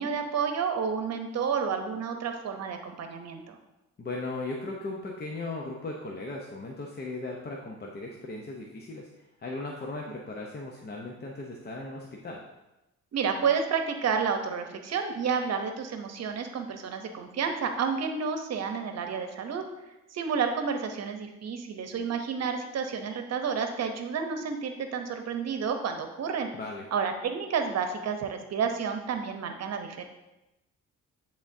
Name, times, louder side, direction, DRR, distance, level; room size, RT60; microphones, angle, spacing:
voice 1, 0.0-3.6 13.1-19.6 20.1-26.5 26.9-30.0, right 6 dB, 60° right, 6 dB, 0.8 m, -30 dB
voice 2, 4.0-12.4 26.5-26.9, left 2 dB, 35° left, 0 dB, 0.7 m, -37 dB
9.8 x 3.6 x 2.7 m, 0.97 s
cardioid pair, 90°, 30 cm